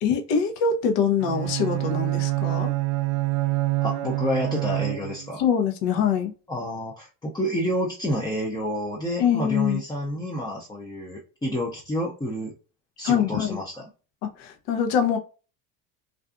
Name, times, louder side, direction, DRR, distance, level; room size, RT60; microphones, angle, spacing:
voice 1, 0.0-2.7 5.4-6.3 9.2-9.8 13.0-13.6 14.4-15.2, left 7 dB, 60° left, 0.8 m, -24 dB
Bowed string instrument, 1.2-5.4, right 18 dB, 60° right, 0.5 m, -26 dB
voice 2, 3.8-5.4 6.5-12.5 13.0-13.9, equal, 10° left, 0.5 m, -29 dB
2.5 x 2.3 x 2.4 m
supercardioid pair, 85°, 47 cm